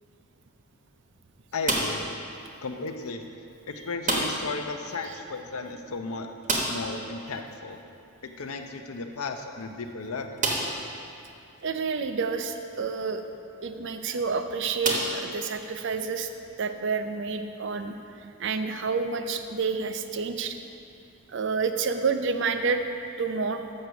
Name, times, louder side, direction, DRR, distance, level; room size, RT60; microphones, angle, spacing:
voice 1, 1.5-2.0 2.6-3.2 3.7-7.8 8.2-10.4, left 3 dB, 85° left, 6 dB, 0.6 m, -35 dB
sound 1, 1.6-2.2 4.0-4.6 4.8-4.9 5.3-5.4 6.4-7.0 8.7-8.8 9.5-9.6 10.4-10.9 11.6-11.7 13.7-13.9 14.8-15.7, right 2 dB, 35° right, 1.1 m, -28 dB
voice 2, 11.6-13.2 13.6-16.3 16.6-17.9 18.4-20.6 21.3-22.8 23.2-23.6, right 5 dB, 55° right, 7 dB, 0.5 m, -29 dB
6.5 x 6.2 x 6.9 m, 2.6 s
head